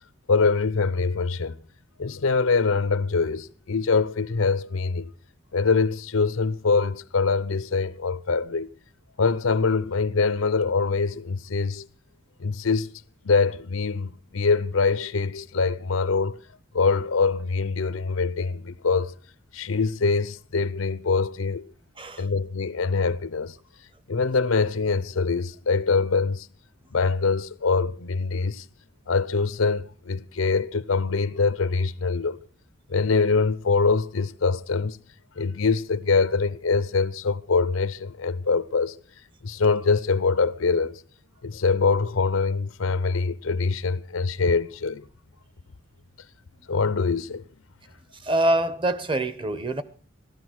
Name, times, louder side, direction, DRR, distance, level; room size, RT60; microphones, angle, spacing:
voice 1, 0.3-1.6 2.0-5.1 5.5-8.7 9.2-11.9 12.4-12.9 13.2-16.4 16.7-19.1 19.5-21.7 22.2-23.5 24.1-26.5 26.9-28.6 29.1-32.4 32.9-35.0 35.4-38.9 39.4-41.0 41.4-45.0 46.7-47.4, left 4 dB, 85° left, 0.7 m, -24 dB
voice 2, 22.0-22.3 48.2-49.8, right 1 dB, 25° right, 1.0 m, -25 dB
17.5 x 13.0 x 6.3 m
head